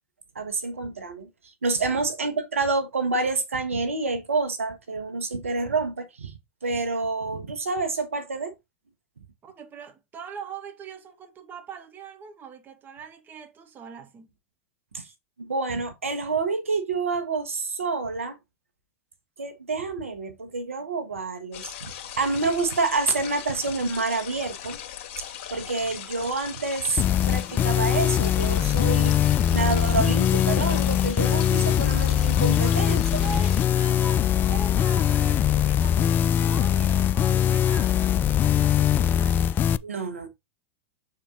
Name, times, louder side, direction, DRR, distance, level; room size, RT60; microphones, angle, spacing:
voice 1, 0.3-1.3 1.6-6.3 6.6-8.5 14.9-15.0 15.4-18.4 19.4-24.8 25.2-25.3 25.5-29.2 29.5-33.0 39.8-40.3, right 3 dB, 85° right, 1.3 m, -28 dB
voice 2, 1.9-2.4 9.4-14.3 32.6-39.4, right 6 dB, 30° right, 1.7 m, -42 dB
sound 1, 21.5-33.6, left 10 dB, 55° left, 1.9 m, -39 dB
sound 2, 27.0-39.8, left 10 dB, 30° left, 0.3 m, -22 dB
6.9 x 4.4 x 3.8 m
hypercardioid pair, 100°, 7 cm